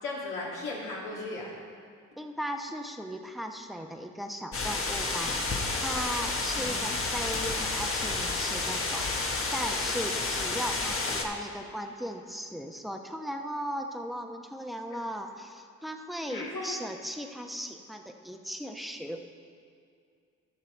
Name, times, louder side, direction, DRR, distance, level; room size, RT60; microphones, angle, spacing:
voice 1, 0.0-1.5 6.5-6.8 16.3-16.7, left 2 dB, 70° left, -4 dB, 2.6 m, -36 dB
voice 2, 2.2-19.4, equal, ahead, 4 dB, 1.0 m, -37 dB
sound 1, 4.5-11.2, left 3 dB, 40° left, 1.4 m, -30 dB
14.0 x 5.7 x 4.6 m, 2.3 s
hypercardioid pair, 50°, 32 cm